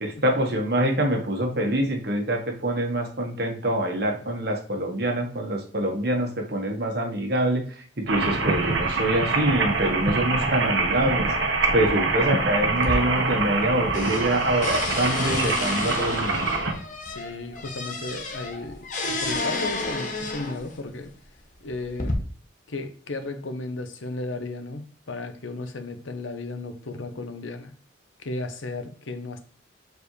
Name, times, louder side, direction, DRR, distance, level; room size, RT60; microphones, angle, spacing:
voice 1, 0.0-7.6 8.0-11.3 11.7-16.4, right 1 dB, 55° right, 1.5 m, -25 dB
sound 1, 8.1-16.7, right 3 dB, 70° right, 1.2 m, -25 dB
sound 2, 12.8-13.7 13.9-20.8 21.5-22.1, left 2 dB, 40° left, 1.0 m, -31 dB
voice 2, 17.0-21.1 21.6-22.2 22.7-27.7 28.2-29.4, left 2 dB, 80° left, 0.9 m, -34 dB
7.0 x 4.7 x 3.2 m
head